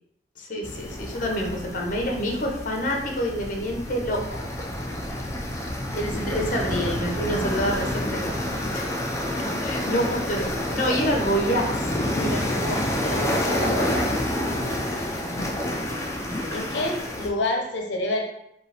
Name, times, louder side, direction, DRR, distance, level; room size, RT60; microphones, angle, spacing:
voice 1, 0.4-4.4 5.9-8.4 8.7-8.9 9.3-14.1, equal, 50° left, 1 dB, 0.8 m, -28 dB
sound 1, 0.6-17.3, left 1 dB, 15° left, 0.5 m, -28 dB
voice 2, 15.2-15.9 16.5-18.2, left 2 dB, 85° left, 1 dB, 0.6 m, -28 dB
5.1 x 2.3 x 3.3 m, 0.77 s
head